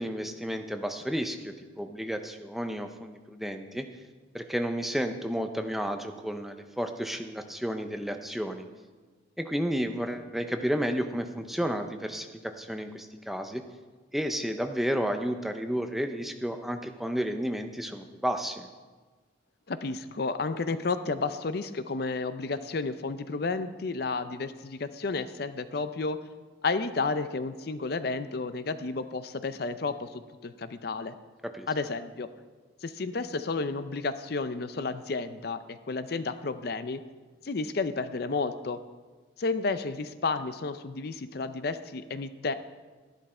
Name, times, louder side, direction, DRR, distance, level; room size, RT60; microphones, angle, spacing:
voice 1, 0.0-3.9 4.3-8.7 9.4-13.6 14.1-18.7 31.4-31.7, equal, ahead, 6 dB, 0.6 m, -32 dB
voice 2, 19.7-26.2 26.6-31.2 31.7-32.3 32.8-37.0 37.4-38.8 39.4-42.5, left 3 dB, 55° left, 11 dB, 0.5 m, -32 dB
12.5 x 11.5 x 4.3 m, 1.4 s
head